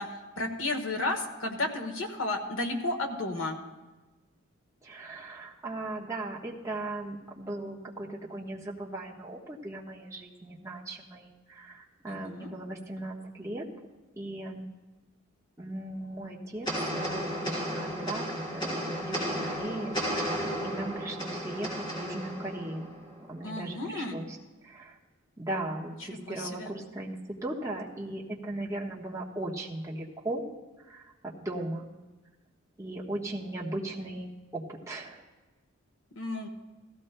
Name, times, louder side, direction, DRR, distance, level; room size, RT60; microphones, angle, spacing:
voice 1, 0.0-3.6 12.1-12.5 23.4-24.1 26.1-26.7 36.1-36.5, left 2 dB, 75° left, 4 dB, 1.3 m, -33 dB
voice 2, 4.8-13.7 14.2-14.7 15.6-16.7 16.9-18.2 18.5-22.9 23.3-24.4 24.6-25.0 25.4-30.4 30.9-31.9 32.8-35.2, right 1 dB, 15° right, -3 dB, 1.2 m, -38 dB
sound 1, 16.7-23.3, equal, 25° left, 3.1 m, -33 dB
17.0 x 14.5 x 2.2 m, 1.2 s
head